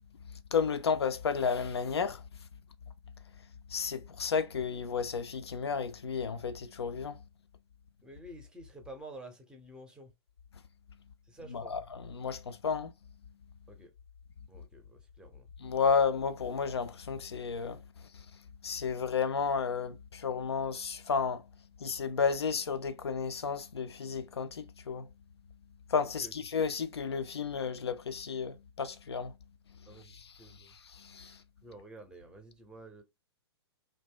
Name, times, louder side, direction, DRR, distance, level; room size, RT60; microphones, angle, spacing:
voice 1, 0.5-2.2 3.7-7.2 11.5-12.9 15.6-17.8 18.1-18.3 18.6-21.4 21.8-25.1 25.9-29.3 29.9-31.4, left 6 dB, 70° left, 0.4 m, -32 dB
voice 2, 8.0-10.1 11.3-11.8 13.7-13.9 14.5-15.5 26.2-26.3 29.9-30.8 31.6-33.0, right 1 dB, 5° right, 0.6 m, -50 dB
2.6 x 2.0 x 3.5 m
figure-of-eight pair, 110°, 14 cm